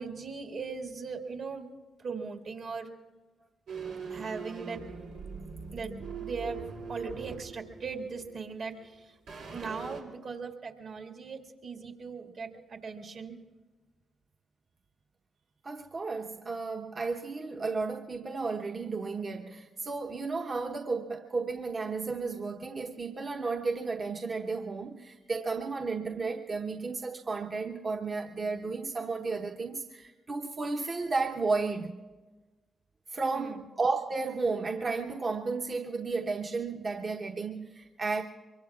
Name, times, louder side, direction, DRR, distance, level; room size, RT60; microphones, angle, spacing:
voice 1, 0.0-1.7 2.0-2.9 4.1-4.8 5.7-5.9 6.2-6.6 6.9-13.4 33.3-33.7, right 5 dB, 65° right, 2.0 m, -39 dB
sound 1, 3.7-8.9 9.3-10.0, right 5 dB, 85° right, 2.8 m, -42 dB
voice 2, 15.6-32.0 33.1-38.2, right 4 dB, 45° right, 1.0 m, -33 dB
24.5 x 23.0 x 2.4 m
hypercardioid pair, 40°, 0 cm